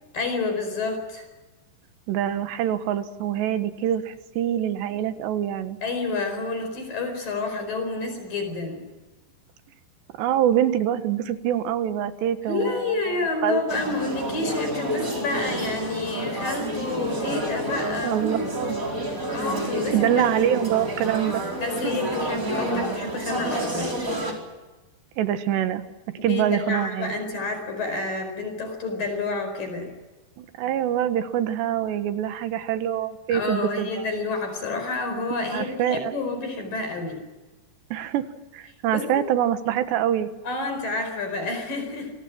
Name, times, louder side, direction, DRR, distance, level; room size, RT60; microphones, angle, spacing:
voice 1, 0.1-1.3 5.8-8.8 12.5-18.5 19.3-20.1 20.7-20.8 21.6-24.0 26.2-29.9 33.3-37.2 38.9-39.2 40.4-42.1, left 3 dB, 55° left, 6 dB, 6.1 m, -29 dB
voice 2, 2.1-5.8 10.2-12.9 13.4-13.6 18.0-18.8 19.9-21.5 25.2-27.1 30.4-34.1 35.4-36.1 37.9-38.3 38.5-40.3, right 10 dB, 85° right, 10 dB, 3.6 m, -25 dB
sound 1, 13.7-24.3, right 1 dB, 20° right, 4.7 m, -29 dB
27.5 x 24.0 x 6.2 m, 1.1 s
omnidirectional pair, 4.8 m